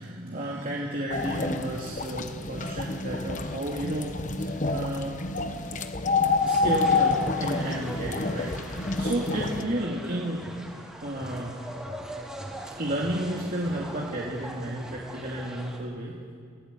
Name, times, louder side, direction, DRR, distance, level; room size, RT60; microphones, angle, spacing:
voice 1, 0.0-5.2 6.4-10.4 11.0-11.6 12.8-16.4, right 1 dB, 50° right, -4 dB, 2.7 m, -32 dB
sound 1, 1.1-9.6, left 3 dB, 40° left, 1.1 m, -28 dB
sound 2, 6.4-15.8, equal, 5° right, 3.7 m, -41 dB
27.5 x 17.0 x 8.3 m, 2.3 s
head